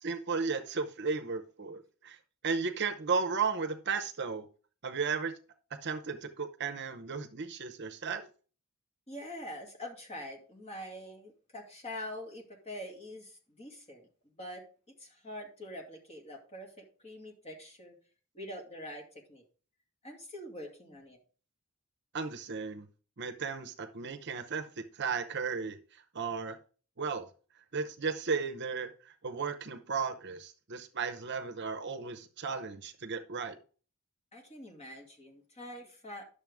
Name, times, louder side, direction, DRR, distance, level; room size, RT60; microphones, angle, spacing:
voice 1, 0.0-2.2 2.4-4.5 4.8-5.3 5.8-8.3 22.1-22.9 23.2-26.6 27.0-27.3 27.7-33.6, right 5 dB, 50° right, 8 dB, 0.8 m, -35 dB
voice 2, 9.1-14.1 14.4-17.9 18.3-19.4 20.0-21.2 34.3-36.3, left 1 dB, 30° left, 1 dB, 2.3 m, -45 dB
10.5 x 6.8 x 3.5 m, 0.39 s
head